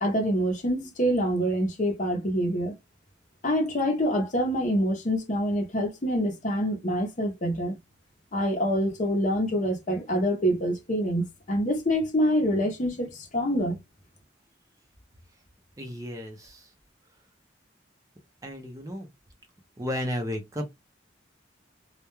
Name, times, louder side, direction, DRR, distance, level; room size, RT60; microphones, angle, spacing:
voice 1, 0.0-2.7 3.4-7.8 8.3-13.8, equal, 40° left, 0.7 m, -26 dB
voice 2, 15.8-16.6 18.4-19.1 19.8-20.7, left 1 dB, 20° right, 0.6 m, -33 dB
2.3 x 2.2 x 2.9 m
head